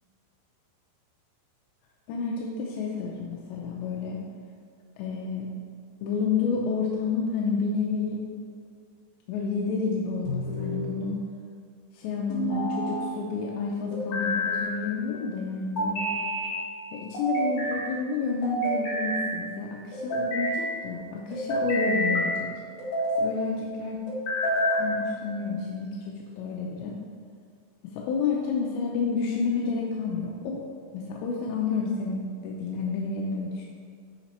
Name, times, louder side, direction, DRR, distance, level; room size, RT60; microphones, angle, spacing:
voice 1, 2.1-4.2 5.0-5.5 6.0-8.2 9.3-11.2 11.9-16.1 16.9-22.5 23.2-24.0 24.8-27.0 27.9-30.6 30.9-33.7, left 5 dB, 80° left, -2 dB, 2.8 m, -30 dB
sound 1, 10.2-10.9 12.3-13.1 13.9-14.7 15.8-16.5 17.1-17.8 18.4-19.3 19.9-20.6 21.3-22.3 22.8-23.3 24.1-24.9, equal, 60° left, 1.7 m, -28 dB
8.8 x 5.1 x 4.2 m, 2.2 s
omnidirectional pair, 5.3 m